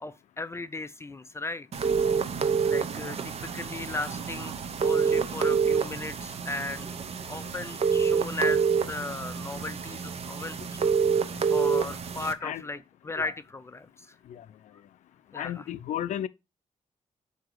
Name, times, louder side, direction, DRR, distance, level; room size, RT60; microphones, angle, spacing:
voice 1, 0.0-1.9 2.7-4.5 4.8-6.9 7.3-10.8 11.2-11.3 11.5-14.2 15.3-15.7, left 2 dB, 20° left, 0.4 m, -36 dB
sound 1, 1.7-12.3, right 5 dB, 55° right, 0.7 m, -27 dB
voice 2, 15.3-16.3, left 11 dB, 85° left, 0.4 m, -33 dB
7.7 x 2.8 x 4.7 m
cardioid pair, 110°, 12 cm